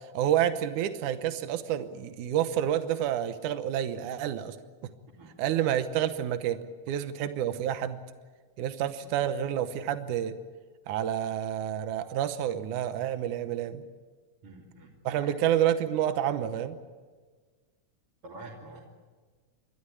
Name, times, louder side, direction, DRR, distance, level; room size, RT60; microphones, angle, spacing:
voice 1, 0.1-4.6 5.4-8.0 8.6-10.3 10.9-13.8 15.0-16.8, right 10 dB, 80° right, 10 dB, 2.5 m, -29 dB
voice 2, 5.2-5.6 14.4-15.3 18.2-18.8, right 2 dB, 45° right, -4 dB, 3.7 m, -47 dB
30.0 x 13.0 x 10.0 m, 1.5 s
omnidirectional pair, 3.6 m